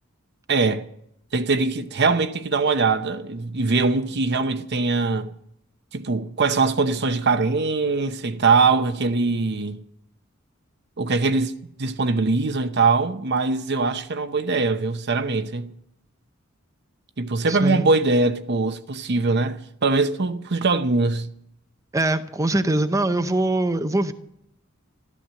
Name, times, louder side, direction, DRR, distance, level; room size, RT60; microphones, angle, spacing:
voice 1, 0.5-0.8 1.3-5.3 5.9-9.8 11.0-11.5 11.8-15.7 17.2-21.3, right 3 dB, 55° right, 0.9 m, -22 dB
voice 2, 17.5-17.9 21.9-24.1, right 2 dB, 15° right, 0.7 m, -22 dB
13.5 x 13.0 x 7.6 m
head